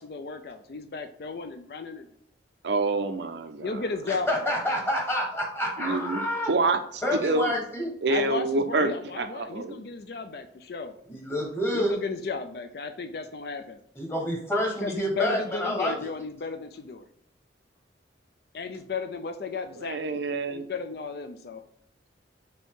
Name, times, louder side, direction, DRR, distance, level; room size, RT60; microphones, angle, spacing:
voice 1, 0.0-2.1 3.6-4.5 8.1-10.9 11.7-13.8 14.8-17.0 18.5-20.2 20.5-21.6, left 4 dB, 60° left, 7 dB, 0.4 m, -34 dB
voice 2, 2.6-3.8 5.8-7.5 8.0-9.8 19.8-20.7, right 3 dB, 70° right, 8 dB, 0.5 m, -27 dB
voice 3, 4.1-6.5 7.0-7.9 11.1-11.9 13.9-15.9, equal, 15° left, -1 dB, 1.2 m, -28 dB
5.3 x 2.7 x 3.6 m, 0.66 s
head